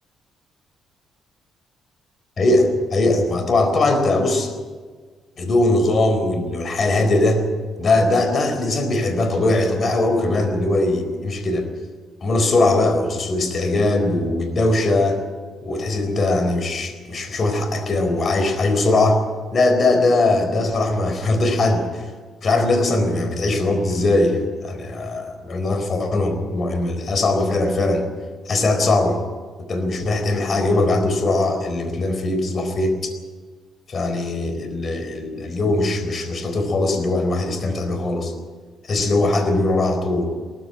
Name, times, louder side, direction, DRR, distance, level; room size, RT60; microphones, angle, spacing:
voice 1, 2.4-4.5 5.4-7.4 7.8-11.7 12.2-15.2 15.6-19.2 19.5-22.1 22.4-28.1 28.5-29.2 29.7-32.9 33.9-38.3 38.8-40.3, left 2 dB, 45° left, 7 dB, 4.1 m, -20 dB
18.5 x 14.5 x 9.8 m, 1.5 s
cardioid pair, 90°, 0 cm